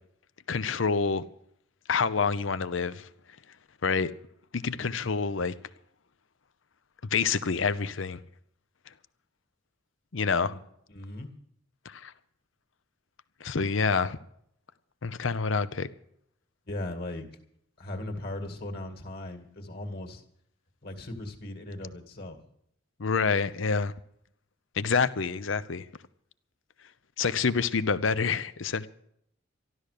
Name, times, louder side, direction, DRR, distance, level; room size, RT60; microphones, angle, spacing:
voice 1, 0.5-1.2 1.9-3.1 3.8-4.1 4.5-5.5 7.1-8.2 10.1-10.6 11.9-12.1 13.4-14.2 15.0-15.9 23.0-23.9 24.8-25.8 27.2-28.9, left 5 dB, 75° left, 0.7 m, -27 dB
voice 2, 10.9-11.4 16.7-17.3 17.8-20.2 20.8-22.5, left 1 dB, 50° left, 2.2 m, -38 dB
13.0 x 12.5 x 6.7 m
head